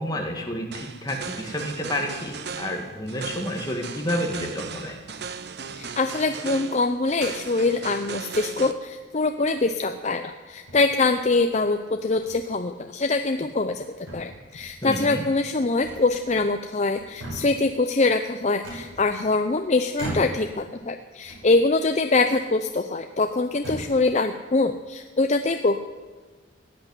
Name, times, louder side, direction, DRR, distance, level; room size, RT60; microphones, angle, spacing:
voice 1, 0.0-5.0 14.8-15.2, left 1 dB, 20° left, 1 dB, 1.9 m, -30 dB
sound 1, 0.7-8.7, right 5 dB, 55° right, 0.8 m, -37 dB
voice 2, 5.7-13.9 14.1-25.8, left 3 dB, 35° left, 6 dB, 0.6 m, -24 dB
sound 2, 9.5-9.9 10.7-11.4 12.2-12.4 12.8-12.9 13.4-13.8 14.1-14.8 15.8-16.6 16.9-17.7 18.6-19.5 19.9-20.6 21.2-21.9 22.2-22.4 23.1-23.2 23.5-24.0, right 1 dB, 90° right, 6.1 m, -38 dB
16.0 x 8.3 x 9.7 m, 1.4 s
head